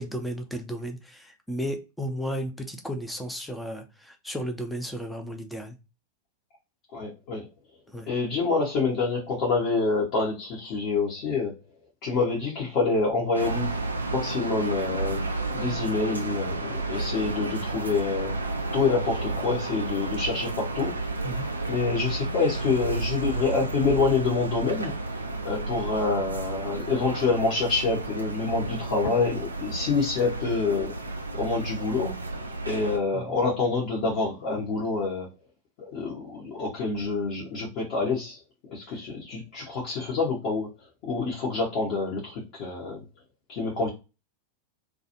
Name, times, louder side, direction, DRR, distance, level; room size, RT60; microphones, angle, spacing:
voice 1, 0.0-5.8 7.9-8.1 21.2-21.5 33.1-33.3, equal, 5° left, 0.6 m, -34 dB
voice 2, 6.9-7.5 8.1-11.6 12.0-13.8 14.1-15.2 15.5-18.4 18.7-21.0 21.7-24.9 25.4-31.0 31.3-32.1 32.7-35.3 35.8-38.4 38.7-40.7 41.0-43.0 43.5-43.9, left 4 dB, 45° left, 0.9 m, -27 dB
sound 1, 13.3-33.0, right 2 dB, 80° right, 0.3 m, -32 dB
2.4 x 2.3 x 2.8 m
figure-of-eight pair, 90°, 0 cm